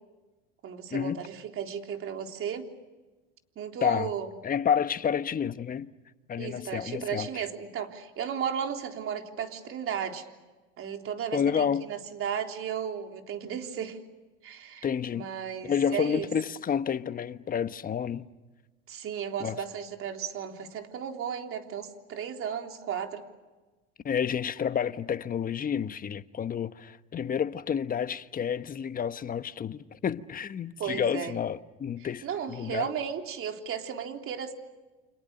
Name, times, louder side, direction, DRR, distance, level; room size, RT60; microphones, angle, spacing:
voice 1, 0.6-2.7 3.6-4.3 6.4-10.3 10.8-14.0 14.4-16.3 18.9-23.2 30.8-31.4 32.0-34.5, right 8 dB, 45° right, 3.7 m, -35 dB
voice 2, 4.4-5.9 6.3-7.3 11.3-11.8 14.8-15.3 15.6-18.3 19.4-19.6 24.0-32.9, left 8 dB, 30° left, 1.2 m, -30 dB
29.5 x 26.5 x 6.8 m
supercardioid pair, 95°, 31 cm